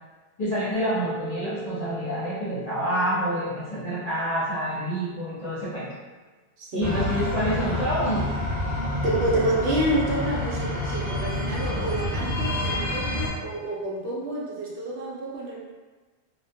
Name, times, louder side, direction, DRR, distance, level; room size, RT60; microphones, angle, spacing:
voice 1, 0.4-5.9 6.7-8.5, equal, 45° left, -9 dB, 0.6 m, -28 dB
Mallet percussion, 0.7-4.9, right 6 dB, 40° right, 0.6 m, -40 dB
voice 2, 6.6-6.9 9.0-15.6, right 1 dB, 70° right, -4 dB, 0.8 m, -28 dB
sound 1, 6.8-13.3, left 1 dB, 15° right, 0.9 m, -28 dB
2.2 x 2.1 x 2.6 m, 1.3 s
omnidirectional pair, 1.2 m